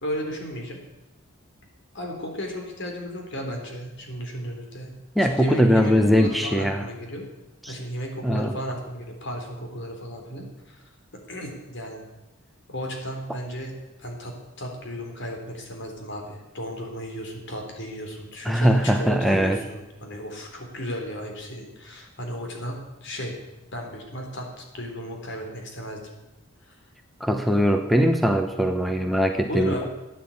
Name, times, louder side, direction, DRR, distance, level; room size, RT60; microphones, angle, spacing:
voice 1, 0.0-0.8 1.9-7.3 7.7-10.8 11.3-12.0 12.7-23.4 23.7-26.0 26.6-26.8 29.5-29.9, equal, 60° left, 2 dB, 3.8 m, -34 dB
voice 2, 5.2-6.8 7.6-7.7 8.2-8.6 18.4-19.6 27.2-29.9, equal, ahead, 5 dB, 0.9 m, -21 dB
14.5 x 9.8 x 8.6 m, 1.1 s
head